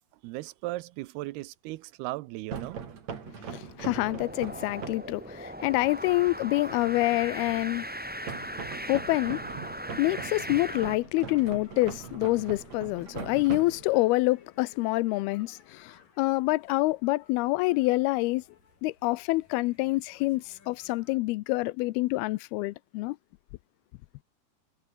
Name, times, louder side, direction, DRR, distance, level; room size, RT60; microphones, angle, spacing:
voice 1, 0.2-2.8 3.4-3.5, right 18 dB, 85° right, 2.7 m, -37 dB
sound 1, 2.5-5.2 8.3-14.2, right 6 dB, 45° right, 3.9 m, -41 dB
voice 2, 3.5-7.9 8.9-9.4 10.0-18.4 18.8-23.2, left 20 dB, 80° left, 2.5 m, -27 dB
sound 2, 3.9-11.0, right 1 dB, 5° right, 1.0 m, -39 dB
sound 3, 7.4-21.2, left 5 dB, 55° left, 6.3 m, -61 dB
omnidirectional pair, 4.5 m